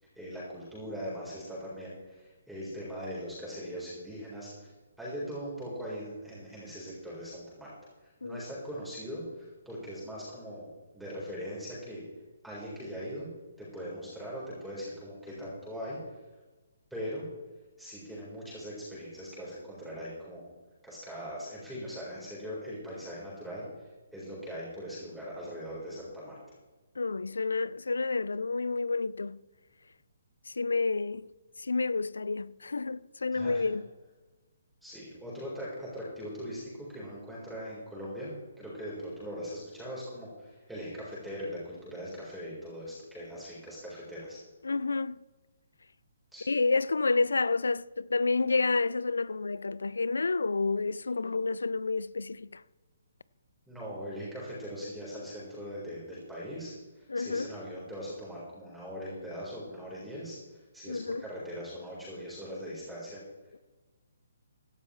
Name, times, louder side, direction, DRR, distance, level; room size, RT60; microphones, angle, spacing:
voice 1, 0.2-4.7 5.0-7.7 8.0-10.7 10.9-12.0 12.4-13.3 13.6-16.0 16.9-17.2 17.8-20.4 20.8-23.8 24.1-26.4 33.3-33.7 34.8-44.4 46.3-46.5 53.7-60.4 60.7-63.2, equal, ahead, 4.1 m, -40 dB
voice 2, 27.0-29.4 30.6-31.3 31.6-33.9 44.6-45.2 46.5-52.6 57.1-57.5 60.9-61.2, left 3 dB, 75° left, 0.4 m, -29 dB
16.5 x 12.0 x 3.2 m
figure-of-eight pair, 135°, 0 cm